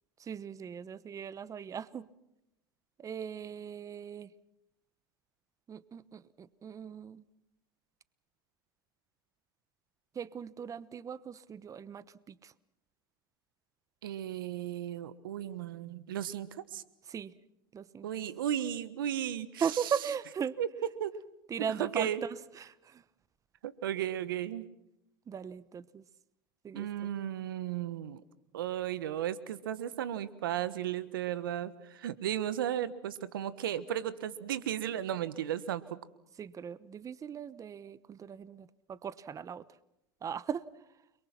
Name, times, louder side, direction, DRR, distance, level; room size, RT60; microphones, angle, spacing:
voice 1, 0.2-2.1 3.0-4.3 5.7-7.2 10.1-12.5 17.1-17.3 17.7-18.1 19.6-20.6 21.5-23.0 25.3-26.0 26.6-27.1 36.4-39.6 40.2-40.6, right 7 dB, 30° right, 19 dB, 1.0 m, -38 dB
voice 2, 14.0-16.8 18.0-19.9 20.6-20.7 21.0-21.1 21.8-22.2 23.6-24.6 26.7-28.2 28.5-36.0, right 11 dB, 85° right, 16 dB, 1.3 m, -35 dB
30.0 x 23.0 x 5.9 m, 0.86 s
hypercardioid pair, 90°, 11 cm